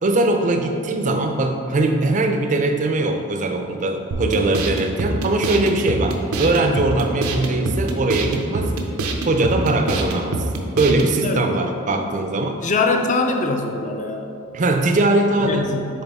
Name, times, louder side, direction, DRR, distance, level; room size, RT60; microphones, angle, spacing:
voice 1, 0.0-8.7 9.3-10.4 10.8-12.6 14.5-15.7, right 2 dB, 35° right, 5 dB, 0.4 m, -20 dB
sound 1, 4.1-11.1, right 2 dB, 90° right, 0.6 m, -25 dB
voice 2, 11.2-11.6 12.6-14.3 15.4-16.0, left 3 dB, 35° left, 4 dB, 0.4 m, -23 dB
7.9 x 3.4 x 3.5 m, 2.6 s
head